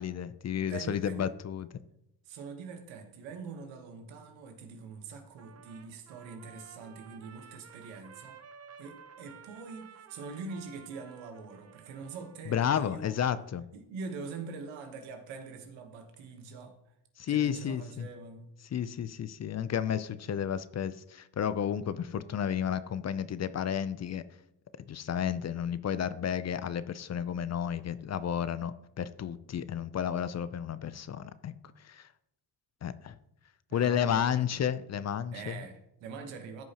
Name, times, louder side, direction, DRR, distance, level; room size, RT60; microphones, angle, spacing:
voice 1, 0.0-1.7 12.5-13.7 17.2-18.1 18.7-24.2 24.9-31.5 31.8-32.1 32.8-33.2 33.7-35.6, left 9 dB, 35° left, 0.5 m, -32 dB
voice 2, 0.6-1.3 2.2-8.4 8.8-13.2 13.7-16.9 17.3-18.5 33.7-34.5 35.3-36.6, right 4 dB, 85° right, 1.3 m, -44 dB
Trumpet, 5.4-12.5, right 6 dB, 35° right, 0.8 m, -53 dB
14.0 x 5.4 x 3.0 m
supercardioid pair, 70°, 45 cm